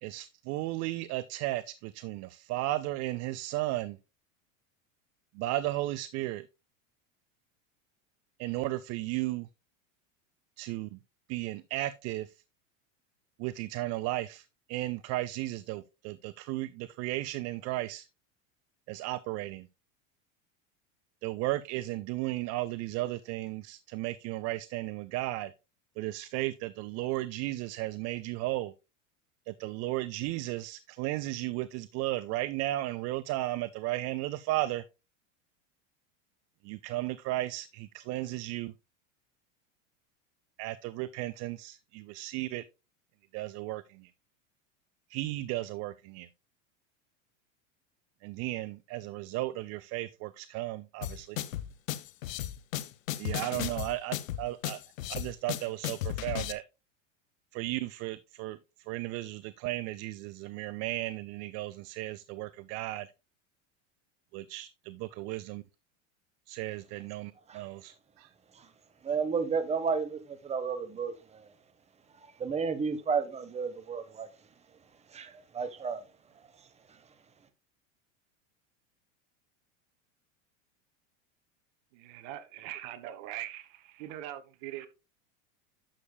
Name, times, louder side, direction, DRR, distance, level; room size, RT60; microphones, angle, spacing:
voice 1, 0.0-4.0 5.4-6.5 8.4-9.5 10.6-11.0 11.3-12.3 13.4-18.1 18.9-19.7 21.2-25.5 26.0-28.7 29.5-34.8 36.6-38.7 40.6-42.6 43.3-44.1 45.1-46.3 48.2-51.4 53.2-54.8 55.1-56.6 57.5-58.6 58.9-63.1 64.3-65.6 66.5-68.3, right 17 dB, 40° right, 0.5 m, -35 dB
sound 1, 51.0-56.5, left 12 dB, 85° left, 0.9 m, -35 dB
voice 2, 69.0-71.5 72.4-74.3 75.1-76.0 76.9-77.0, right 5 dB, 15° right, 1.1 m, -32 dB
voice 3, 81.9-84.9, right 13 dB, 55° right, 1.4 m, -42 dB
11.5 x 7.1 x 2.2 m
supercardioid pair, 120°, 39 cm